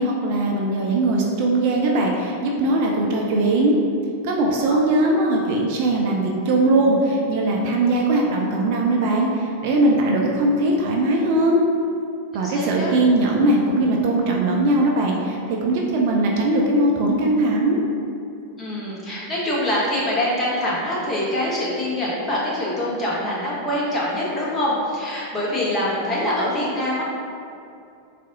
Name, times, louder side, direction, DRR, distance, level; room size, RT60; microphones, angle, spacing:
voice 1, 0.0-3.7 4.2-11.6 12.3-17.8, right 2 dB, 45° right, -1 dB, 0.4 m, -20 dB
voice 2, 12.3-12.9 18.6-27.0, left 1 dB, 15° left, -7 dB, 1.1 m, -24 dB
4.0 x 2.5 x 3.6 m, 2.6 s
figure-of-eight pair, 90°, 0 cm